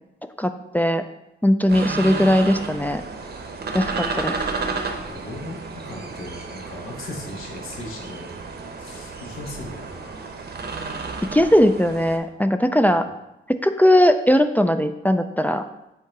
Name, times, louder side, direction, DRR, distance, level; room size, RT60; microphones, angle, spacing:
voice 1, 0.4-1.0 1.4-3.0 3.7-4.4 11.3-13.0 13.5-15.6, equal, 10° left, 8 dB, 0.3 m, -19 dB
sound 1, 1.7-12.2, right 4 dB, 50° right, 0.8 m, -32 dB
voice 2, 4.9-8.4 8.8-10.3, left 1 dB, 80° left, -2 dB, 1.5 m, -37 dB
8.4 x 2.9 x 4.6 m, 0.90 s
cardioid pair, 100°, 21 cm